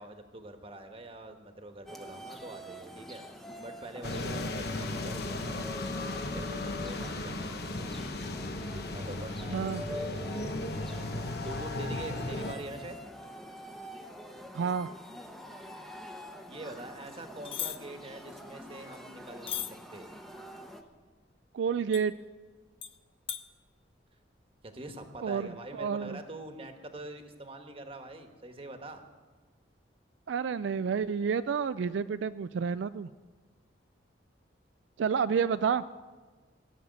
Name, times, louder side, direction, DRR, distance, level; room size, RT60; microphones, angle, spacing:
voice 1, 0.0-3.2 3.6-5.7 6.1-8.0 8.7-10.5 11.2-13.0 16.5-20.1 24.6-29.0, right 1 dB, 30° right, 6 dB, 1.2 m, -45 dB
sound 1, 1.9-20.8, left 1 dB, ahead, 0.9 m, -46 dB
sound 2, 4.0-12.5, left 2 dB, 55° left, 1.0 m, -36 dB
voice 2, 9.5-9.8 14.5-14.9 21.5-22.1 25.2-25.5 25.8-26.2 30.3-33.1 35.0-35.8, right 6 dB, 75° right, 12 dB, 0.4 m, -29 dB
sound 3, 17.5-17.8 19.5-19.7 21.9-22.0 22.8-22.9 23.3-23.4, left 10 dB, 30° left, 0.6 m, -35 dB
17.5 x 7.2 x 9.6 m, 1.4 s
head